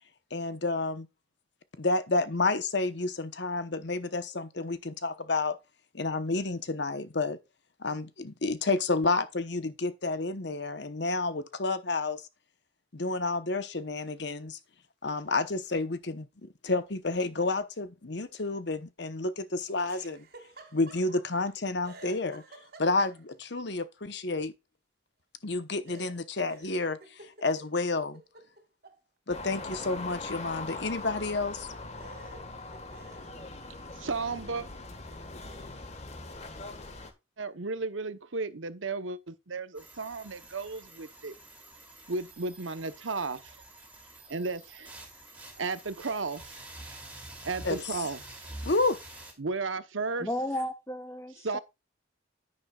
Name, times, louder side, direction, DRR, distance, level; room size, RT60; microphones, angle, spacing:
voice 1, 0.3-1.1 1.8-5.6 5.9-7.4 7.8-12.2 12.9-14.6 15.0-20.2 20.7-22.4 22.8-24.5 25.4-28.2 29.3-31.7 47.6-48.0 48.6-49.0, left 3 dB, 55° left, 1.0 m, -30 dB
Laughter, 19.7-21.5 21.8-23.5 25.9-29.0 29.3-31.0 31.6-31.7 32.0-33.3, right 3 dB, 50° right, 2.4 m, -52 dB
sound 1, 29.3-37.1, left 3 dB, 35° left, 1.6 m, -41 dB
voice 2, 34.0-34.6 37.4-41.3 42.1-43.6 44.3-44.9 45.6-46.6 47.4-48.4 49.4-50.3 51.4-51.6, right 3 dB, 75° right, 1.0 m, -34 dB
sound 2, 39.7-49.3, right 2 dB, 5° right, 2.9 m, -47 dB
voice 3, 50.2-51.6, left 1 dB, 15° left, 1.1 m, -34 dB
10.5 x 9.6 x 2.4 m
head